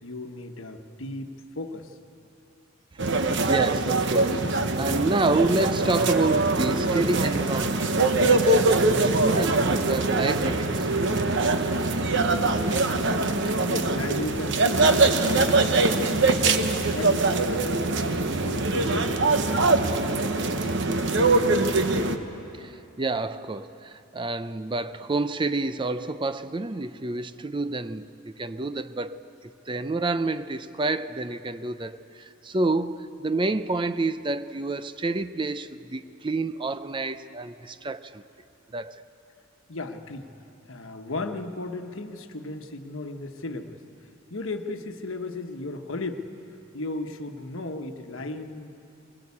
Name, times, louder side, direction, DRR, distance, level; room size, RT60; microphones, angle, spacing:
voice 1, 0.0-2.0 12.8-17.4 17.8-19.2 39.7-40.3 40.7-43.8 44.3-46.3 46.7-48.7, left 2 dB, 65° left, 1.3 m, -36 dB
sound 1, 3.0-22.2, right 3 dB, 55° right, 1.1 m, -23 dB
voice 2, 3.5-10.9 22.5-38.2 38.7-39.0, right 2 dB, 20° right, 0.5 m, -29 dB
22.0 x 20.0 x 8.5 m
head